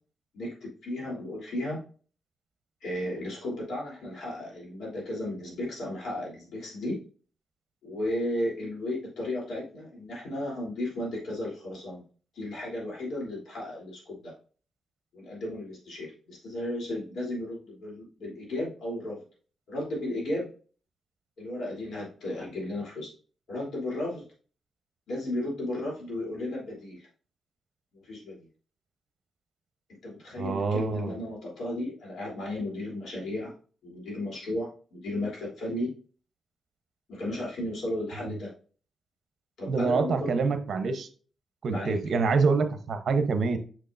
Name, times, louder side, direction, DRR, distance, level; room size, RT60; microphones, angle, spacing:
voice 1, 0.3-1.8 2.8-7.0 7.8-12.0 12.3-14.3 15.1-19.2 19.7-20.5 21.4-23.1 23.5-24.2 25.1-27.1 27.9-28.5 30.0-33.5 33.8-35.9 37.1-38.5 39.6-40.3 41.7-42.0, left 1 dB, 75° left, -4 dB, 3.3 m, -34 dB
voice 2, 30.4-31.1 38.2-38.3 39.7-41.1 41.6-43.6, right 4 dB, 60° right, 8 dB, 0.9 m, -26 dB
6.4 x 6.2 x 2.6 m, 0.41 s
wide cardioid pair, 125°, 0 cm